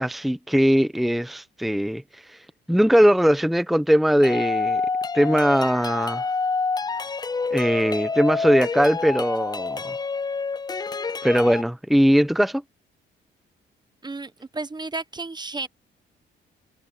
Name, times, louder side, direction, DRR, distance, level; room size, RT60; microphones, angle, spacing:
voice 1, 0.0-2.0 2.3-2.4 2.7-4.8 5.1-6.2 7.5-10.0 11.2-12.6, equal, ahead, 0.9 m, -20 dB
sound 1, 4.2-11.6, left 4 dB, 20° left, 0.5 m, -27 dB
voice 2, 14.0-15.7, right 3 dB, 20° right, 1.2 m, -32 dB
cardioid pair, 90°, 20 cm